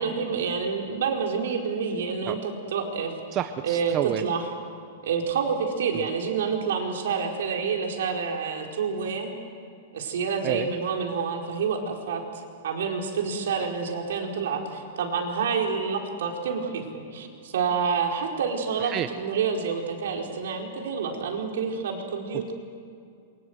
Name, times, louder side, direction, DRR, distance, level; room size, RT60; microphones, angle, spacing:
voice 1, 0.0-3.1 3.6-4.4 5.0-9.3 9.9-12.2 12.6-16.8 17.1-22.5, right 6 dB, 70° right, 1 dB, 4.5 m, -28 dB
voice 2, 3.3-4.2 5.9-6.0 10.4-10.7 18.8-19.2, right 11 dB, 20° right, 9 dB, 0.6 m, -30 dB
27.5 x 24.0 x 8.0 m, 2.4 s
supercardioid pair, 180°, 0 cm